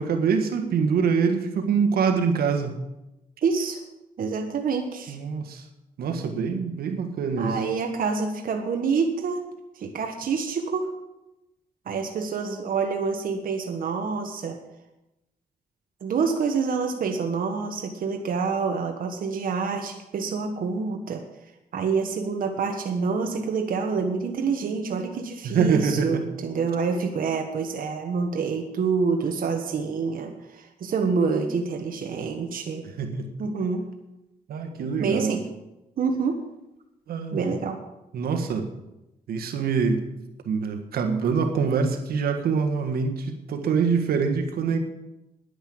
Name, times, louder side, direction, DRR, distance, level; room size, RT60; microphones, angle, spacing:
voice 1, 0.0-2.7 5.1-5.6 6.0-7.6 25.4-26.3 33.0-33.3 34.5-35.4 37.1-37.5 38.1-38.7 39.3-40.1 40.4-44.8, right 5 dB, 85° right, 6 dB, 1.6 m, -24 dB
voice 2, 3.4-3.8 4.2-5.2 7.4-9.4 9.8-10.9 11.9-14.6 16.0-21.2 21.7-32.8 33.4-33.8 35.0-35.5 36.0-36.4 37.3-37.8, right 5 dB, 70° right, 4 dB, 1.4 m, -27 dB
10.5 x 10.0 x 7.8 m, 0.95 s
cardioid pair, 90°, 15 cm